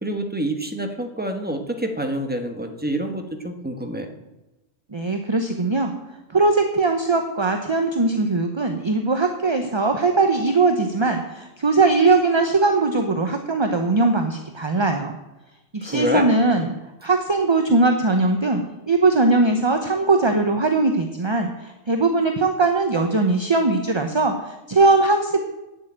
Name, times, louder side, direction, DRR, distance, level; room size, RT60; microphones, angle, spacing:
voice 1, 0.0-4.1 15.8-16.3, right 1 dB, 5° right, 4 dB, 1.3 m, -27 dB
voice 2, 4.9-5.9 6.3-15.2 15.7-16.7 17.0-25.4, right 3 dB, 25° right, 5 dB, 0.7 m, -20 dB
9.0 x 8.0 x 8.8 m, 1.0 s
omnidirectional pair, 1.4 m